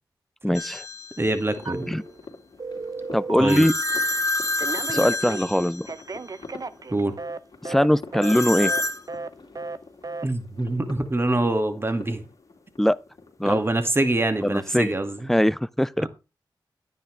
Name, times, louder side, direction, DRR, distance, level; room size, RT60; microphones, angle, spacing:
voice 1, 0.4-0.8 1.9-2.0 3.1-3.7 4.9-5.9 7.6-8.7 12.8-13.0 13.4-13.6 14.4-14.9 15.3-16.1, equal, 5° left, 0.6 m, -21 dB
sound 1, 0.5-1.3 3.5-6.1 8.2-9.0, left 2 dB, 40° left, 1.2 m, -28 dB
voice 2, 1.2-1.9 3.4-3.7 6.9-7.1 10.2-12.2 13.4-15.3 16.0-16.1, right 2 dB, 30° right, 2.2 m, -25 dB
sound 2, 1.6-15.4, left 3 dB, 65° left, 2.6 m, -45 dB
Telephone, 1.7-2.3 2.6-4.2 4.6-7.4 7.7-7.9 8.1-8.3 8.6-8.8 9.1-9.3 9.6-9.8 10.0-10.3, right 3 dB, 45° right, 0.8 m, -34 dB
10.5 x 9.3 x 3.4 m
cardioid pair, 45°, 8 cm